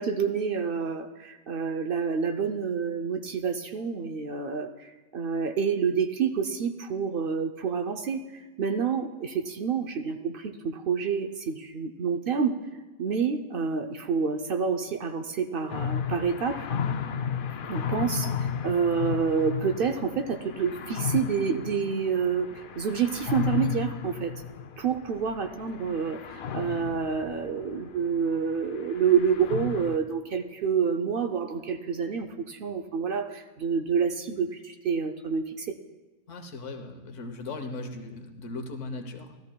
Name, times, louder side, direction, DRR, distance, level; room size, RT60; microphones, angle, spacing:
voice 1, 0.0-12.6 13.0-16.7 17.7-24.3 24.8-35.7, right 6 dB, 60° right, 7 dB, 0.7 m, -28 dB
sound 1, 15.7-30.0, left 7 dB, 60° left, 0.6 m, -34 dB
voice 2, 36.3-39.4, left 2 dB, 85° left, 6 dB, 1.3 m, -38 dB
13.5 x 13.0 x 2.2 m, 1.2 s
omnidirectional pair, 1.2 m